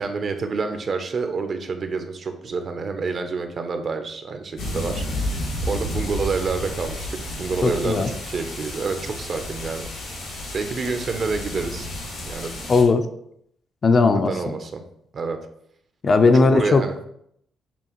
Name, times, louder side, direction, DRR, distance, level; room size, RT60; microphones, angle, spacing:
voice 1, 0.0-9.9 10.5-11.9 12.3-12.5 14.1-14.8 15.1-15.4 16.3-16.9, right 4 dB, 45° right, 7 dB, 0.6 m, -28 dB
sound 1, 4.6-12.8, left 1 dB, 85° left, 1.8 m, -31 dB
voice 2, 7.6-8.1 12.7-13.1 13.8-14.3 16.0-16.8, left 3 dB, 40° left, 8 dB, 0.4 m, -17 dB
6.9 x 2.5 x 3.0 m, 0.72 s
cardioid pair, 90°, 0 cm